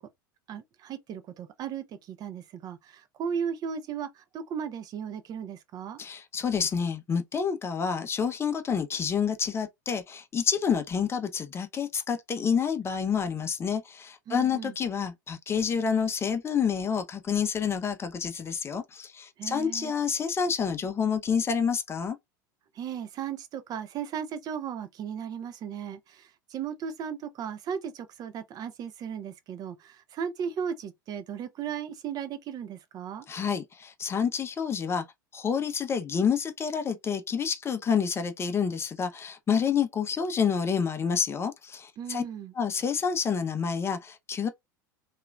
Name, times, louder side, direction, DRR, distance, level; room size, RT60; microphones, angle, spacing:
voice 1, 0.5-6.0 14.3-14.7 19.4-19.9 22.7-33.2 42.0-42.5, right 7 dB, 35° right, 0.5 m, -36 dB
voice 2, 6.0-22.2 33.3-35.0 35.3-42.2 42.5-44.5, left 6 dB, 25° left, 0.6 m, -28 dB
2.9 x 2.4 x 2.3 m
figure-of-eight pair, 80°, 11 cm